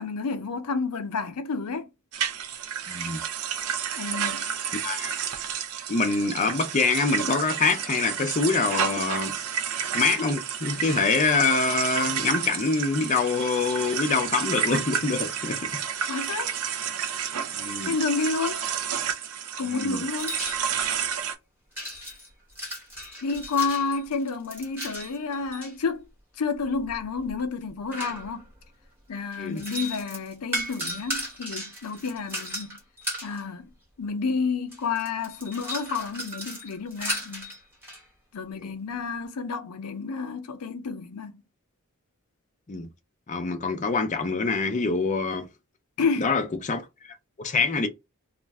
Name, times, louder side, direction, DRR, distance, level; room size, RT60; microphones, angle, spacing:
voice 1, 0.0-1.9 4.0-4.5 16.1-16.5 17.8-18.7 19.6-20.4 23.2-26.1 26.4-28.4 29.1-32.8 33.2-33.7 34.0-37.5 38.3-41.4 46.0-46.3, left 4 dB, 90° left, 0.6 m, -30 dB
sound 1, 2.1-21.3, right 8 dB, 75° right, 0.5 m, -30 dB
voice 2, 2.9-3.2 4.8-5.2 5.9-9.4 9.9-15.8 17.5-17.9 19.6-20.0 29.4-29.6 38.6-38.7 42.7-42.9 43.3-45.5 46.2-47.9, left 4 dB, 35° left, 0.5 m, -25 dB
sound 2, 20.2-20.9 21.7-25.7 26.6-28.6 29.3-33.4 34.3-34.4 34.7-38.0, equal, 10° right, 1.0 m, -36 dB
2.5 x 2.1 x 3.4 m
head